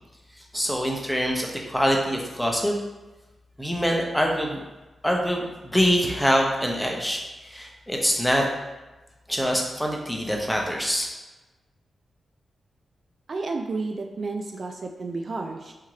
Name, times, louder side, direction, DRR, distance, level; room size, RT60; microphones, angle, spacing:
voice 1, 0.5-2.8 3.6-4.6 5.0-8.4 9.3-11.1, equal, 5° left, 0 dB, 0.7 m, -24 dB
voice 2, 13.3-15.7, right 3 dB, 55° right, 3 dB, 0.3 m, -31 dB
3.6 x 2.8 x 3.1 m, 1.1 s
cardioid pair, 55°, 0 cm